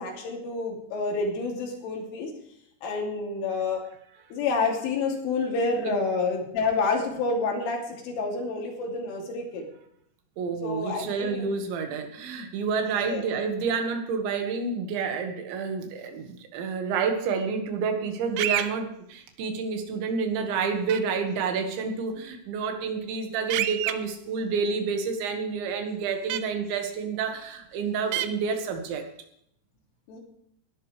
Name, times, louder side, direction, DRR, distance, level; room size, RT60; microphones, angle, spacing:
voice 1, 0.0-2.3 2.8-3.8 4.3-9.7 10.6-11.5 13.0-13.2 30.1-30.2, left 4 dB, 75° left, 1 dB, 5.3 m, -28 dB
voice 2, 10.4-29.0, right 5 dB, 70° right, 5 dB, 4.0 m, -29 dB
sound 1, 18.4-18.7 20.9-21.0 23.5-23.9 26.3-26.4 28.1-28.3, right 13 dB, 85° right, 3.3 m, -27 dB
20.0 x 12.0 x 3.3 m, 0.72 s
omnidirectional pair, 5.7 m